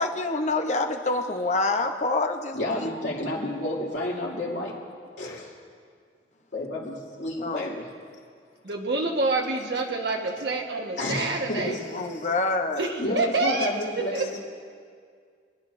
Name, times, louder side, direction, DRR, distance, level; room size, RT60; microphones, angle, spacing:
voice 1, 0.0-2.9 7.4-7.7 11.9-12.9, left 2 dB, 40° left, 5 dB, 0.8 m, -27 dB
voice 2, 2.5-4.8 5.2-5.5 6.5-7.9 11.0-11.9 13.0-14.4, left 1 dB, 80° left, -4 dB, 2.7 m, -30 dB
voice 3, 8.6-11.8 12.8-14.2, right 3 dB, 65° right, 1 dB, 1.4 m, -27 dB
25.5 x 10.5 x 2.6 m, 2.1 s
head